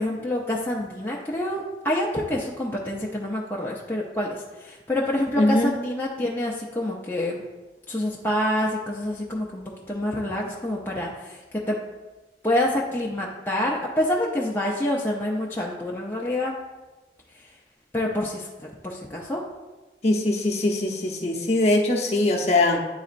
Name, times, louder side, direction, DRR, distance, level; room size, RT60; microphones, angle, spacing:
voice 1, 0.0-7.4 7.9-11.4 11.7-11.8 12.4-16.6 17.9-19.4, left 1 dB, 10° left, -4 dB, 0.5 m, -27 dB
voice 2, 5.4-5.7 20.0-22.8, left 2 dB, 35° left, 0 dB, 0.7 m, -21 dB
9.4 x 4.1 x 2.5 m, 1.2 s
head